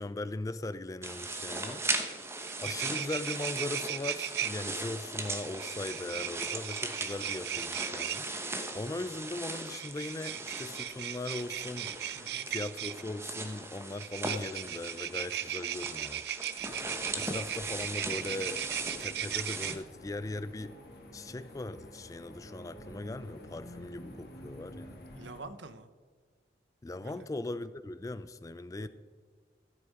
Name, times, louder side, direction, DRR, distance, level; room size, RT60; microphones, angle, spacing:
voice 1, 0.0-1.8 2.6-8.3 8.7-11.9 12.5-16.2 17.1-18.7 19.0-20.8 21.1-25.0 26.8-28.9, left 2 dB, 20° left, 0.3 m, -39 dB
sound 1, 1.0-19.8, right 2 dB, 15° right, 0.9 m, -39 dB
sound 2, 2.1-2.2 2.4-4.5 5.6-8.2 9.6-13.0 14.0-19.7, right 11 dB, 65° right, 0.4 m, -37 dB
voice 2, 12.1-12.5 25.1-25.9 27.0-27.3 28.8-28.9, right 3 dB, 85° right, 0.8 m, -47 dB
sound 3, 16.6-25.4, equal, 60° left, 1.7 m, -50 dB
13.0 x 8.0 x 4.8 m
head